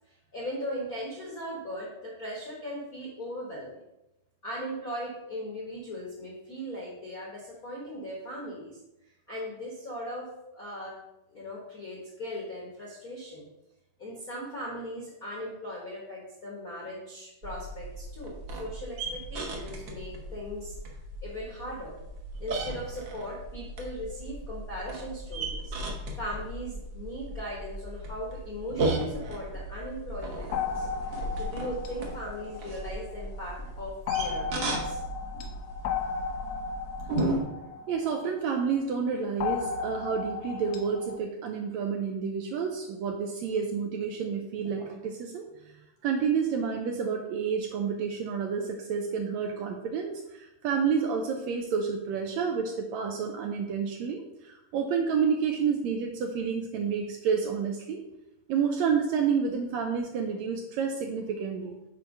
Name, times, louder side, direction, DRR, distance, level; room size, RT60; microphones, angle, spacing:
voice 1, 0.3-3.8 4.4-8.8 9.3-11.0 11.3-13.5 14.0-20.8 21.2-22.0 22.4-25.8 26.2-35.0 35.3-35.5, equal, 55° left, -4 dB, 1.0 m, -38 dB
sound 1, 17.4-37.4, right 2 dB, 70° right, 1.1 m, -36 dB
sound 2, 30.5-33.3 34.1-38.6 39.4-41.2, left 6 dB, 85° left, 2.3 m, -35 dB
voice 2, 37.9-45.4 46.0-58.0 58.5-61.8, right 6 dB, 90° right, 3 dB, 1.6 m, -29 dB
6.5 x 4.6 x 5.3 m, 0.89 s
omnidirectional pair, 3.9 m